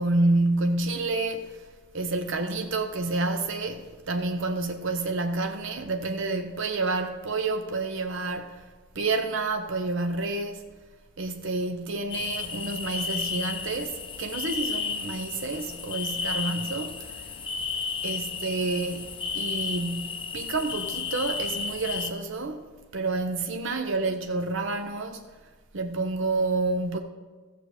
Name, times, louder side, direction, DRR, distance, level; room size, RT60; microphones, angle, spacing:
voice 1, 0.0-1.6 1.9-8.7 8.9-10.6 11.2-17.3 18.0-22.7 22.9-25.2 25.7-27.0, right 2 dB, 60° right, 0.7 m, -29 dB
sound 1, 12.1-22.1, left 5 dB, 25° left, 0.8 m, -33 dB
14.0 x 7.6 x 5.0 m
head